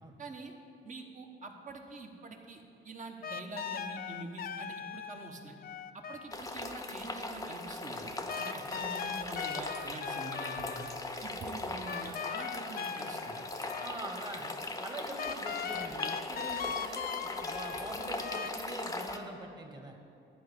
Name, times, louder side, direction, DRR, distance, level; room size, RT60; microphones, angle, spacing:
voice 1, 0.2-0.5 0.8-5.6 5.9-10.9 11.2-13.4, right 3 dB, 40° right, 3 dB, 1.2 m, -45 dB
sound 1, 3.2-6.5 8.3-11.0 11.9-14.0 14.3-14.4 15.2-18.5, left 7 dB, 50° left, 0.5 m, -39 dB
sound 2, 6.3-19.2, left 2 dB, 15° left, 0.8 m, -39 dB
voice 2, 13.8-20.0, right 2 dB, 20° right, 2 dB, 1.4 m, -44 dB
11.5 x 4.9 x 8.3 m, 2.6 s
cardioid pair, 90°, 20 cm